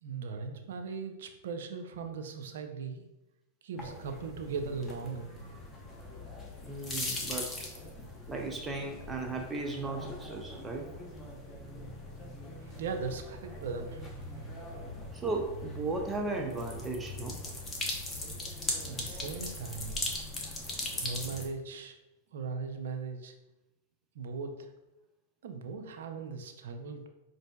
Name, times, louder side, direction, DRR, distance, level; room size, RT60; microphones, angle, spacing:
voice 1, 0.0-3.1 3.6-5.3 12.6-14.1 14.7-14.8 18.8-20.0 21.0-22.0 22.3-23.3 24.1-24.7 25.4-27.1, right 5 dB, 70° right, 5 dB, 0.5 m, -38 dB
sound 1, 3.8-21.5, left 2 dB, 20° left, 0.8 m, -40 dB
voice 2, 6.6-7.7 8.3-10.9 15.1-17.4, right 3 dB, 15° right, 2 dB, 0.5 m, -36 dB
5.1 x 2.6 x 2.3 m, 0.95 s
hypercardioid pair, 105°, 0 cm